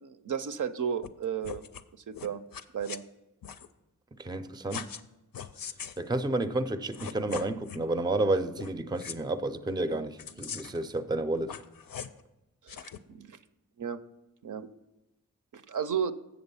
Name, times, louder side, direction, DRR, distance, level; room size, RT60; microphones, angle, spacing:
voice 1, 0.0-1.6 2.1-2.4 2.7-3.0 12.6-13.4 13.8-14.0 14.4-14.7 15.5-16.1, right 7 dB, 65° right, 0.5 m, -33 dB
sound 1, 1.0-1.1 1.4-1.8 2.1-3.0 3.4-3.7 4.7-5.1 5.3-6.0 6.7-6.8 6.9-7.8 8.5-8.7 9.0-9.2 10.2-10.8 11.4-12.2 12.7-13.0, left 7 dB, 90° left, 0.5 m, -41 dB
voice 2, 4.2-4.9 6.0-11.6, right 2 dB, 15° right, 0.4 m, -30 dB
7.6 x 6.9 x 5.5 m
wide cardioid pair, 70°, 34 cm